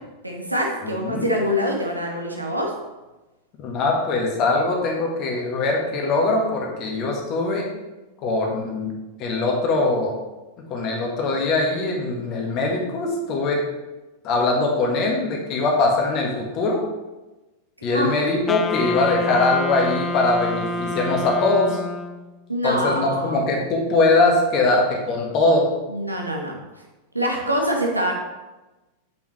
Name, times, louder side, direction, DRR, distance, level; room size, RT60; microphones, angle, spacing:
voice 1, 0.2-2.7 17.9-18.1 22.5-23.5 25.9-26.5 27.1-28.1, equal, 85° right, 0 dB, 0.9 m, -24 dB
voice 2, 0.8-1.3 3.6-7.7 8.2-8.9 9.2-10.2 10.7-13.6 14.2-16.8 17.8-21.8 22.6-25.7, left 2 dB, 40° left, 0 dB, 1.5 m, -21 dB
Wind instrument woodwind instrument, 18.5-22.3, left 2 dB, 20° left, 0.4 m, -28 dB
6.9 x 5.4 x 3.2 m, 1.1 s
figure-of-eight pair, 90°, 0 cm